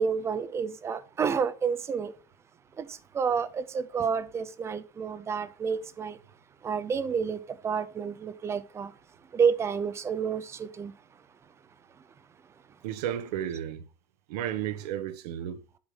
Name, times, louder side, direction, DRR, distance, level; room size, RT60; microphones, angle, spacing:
voice 1, 0.0-2.1 2.8-2.9 3.2-6.2 6.6-7.4 7.6-8.9 9.3-10.9, right 6 dB, 15° right, 0.4 m, -29 dB
voice 2, 12.8-13.8 14.3-15.6, right 10 dB, 70° right, 1.0 m, -33 dB
8.0 x 5.5 x 3.6 m
supercardioid pair, 160°, 21 cm